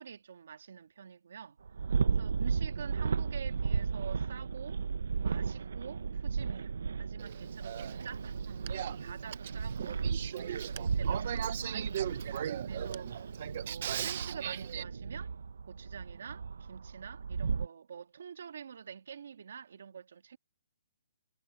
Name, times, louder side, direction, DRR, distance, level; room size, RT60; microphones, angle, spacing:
voice 1, 0.0-1.6 2.2-4.8 5.2-8.4 9.0-10.0 10.3-12.2 12.7-13.3 13.7-15.3 15.7-20.4, right 7 dB, 50° right, 1.8 m, -47 dB
sound 1, 1.7-17.7, right 5 dB, 70° right, 0.8 m, -35 dB
Male speech man speaking / Female speech woman speaking / Conversation, 7.2-14.8, right 10 dB, 35° right, 0.8 m, -39 dB
hypercardioid pair, 175°, 0 cm